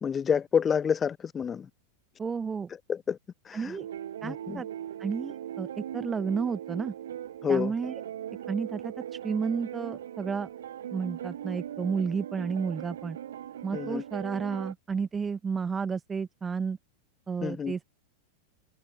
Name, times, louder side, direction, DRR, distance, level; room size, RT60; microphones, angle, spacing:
voice 1, 0.0-1.7 2.9-3.2 3.4-3.8 4.2-4.6 7.4-7.7 13.7-14.0 17.4-17.7, left 7 dB, 20° left, 0.9 m, -28 dB
voice 2, 2.2-2.7 3.5-3.9 4.2-4.7 5.0-6.9 7.5-7.9 8.5-10.5 10.9-13.2 13.6-16.8 17.3-17.9, right 5 dB, 15° right, 1.1 m, -32 dB
sound 1, 3.8-14.7, right 10 dB, 60° right, 1.1 m, -39 dB
figure-of-eight pair, 90°, 0 cm